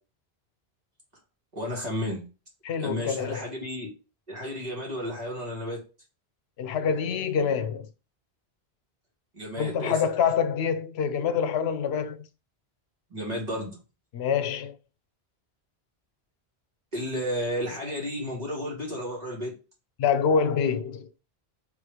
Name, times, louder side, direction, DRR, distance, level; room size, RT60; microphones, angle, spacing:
voice 1, 1.5-2.2 2.8-3.9 4.3-5.8 9.3-10.0 13.1-13.8 16.9-19.6, equal, 40° right, 1.9 m, -32 dB
voice 2, 2.6-3.4 6.6-7.9 9.6-12.2 14.1-14.7 20.0-21.1, left 6 dB, 80° left, 0.8 m, -26 dB
3.4 x 3.2 x 4.7 m
omnidirectional pair, 1.0 m